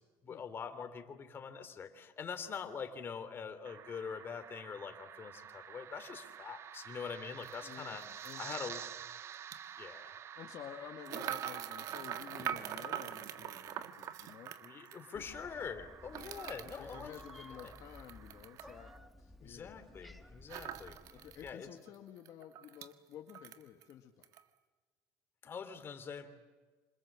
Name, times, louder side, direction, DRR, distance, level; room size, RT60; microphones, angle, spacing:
voice 1, 0.2-8.1 8.4-8.8 9.8-10.1 14.6-17.1 17.6-17.7 19.4-21.0 21.4-21.7 25.4-26.3, left 6 dB, 35° left, 8 dB, 3.1 m, -44 dB
sound 1, 3.6-19.0, right 9 dB, 40° right, 0.8 m, -51 dB
sound 2, 7.4-7.5 8.2-8.4 9.3-9.6 11.0-15.0 16.1-18.7 20.5-21.5 21.9-22.0 22.2-22.9 23.3-23.9 24.2-24.4, right 10 dB, 60° right, 1.6 m, -43 dB
voice 2, 7.6-8.6 10.4-14.6 15.1-15.3 16.2-20.2 21.1-24.3, left 10 dB, 55° left, 3 dB, 2.0 m, -52 dB
Meow, 15.1-21.5, left 1 dB, ahead, 1.8 m, -55 dB
27.5 x 26.5 x 7.5 m, 1.4 s
cardioid pair, 115°, 7 cm